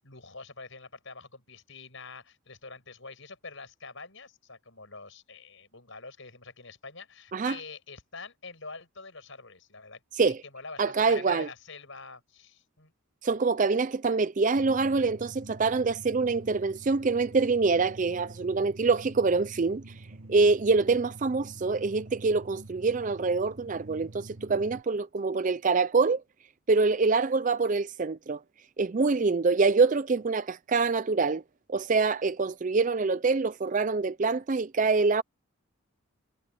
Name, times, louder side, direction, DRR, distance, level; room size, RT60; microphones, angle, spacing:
voice 1, 0.0-12.9, left 4 dB, 60° left, 7.9 m, -46 dB
voice 2, 10.8-11.5 13.2-20.0 20.3-26.2 26.7-28.4 28.8-31.4 31.7-35.2, right 4 dB, 35° right, 0.4 m, -25 dB
sound 1, 14.5-24.8, right 2 dB, 55° right, 1.6 m, -46 dB
head